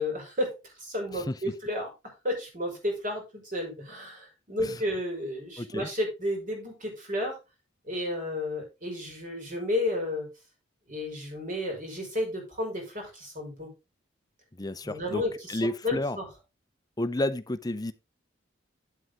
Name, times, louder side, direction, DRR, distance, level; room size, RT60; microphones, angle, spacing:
voice 1, 0.0-7.4 7.8-10.3 10.9-13.7 14.8-16.3, left 1 dB, 40° right, 4.9 m, -32 dB
voice 2, 5.6-5.9 14.5-15.2 15.5-16.2 17.0-17.9, left 1 dB, 20° left, 0.6 m, -31 dB
9.3 x 7.9 x 3.7 m
head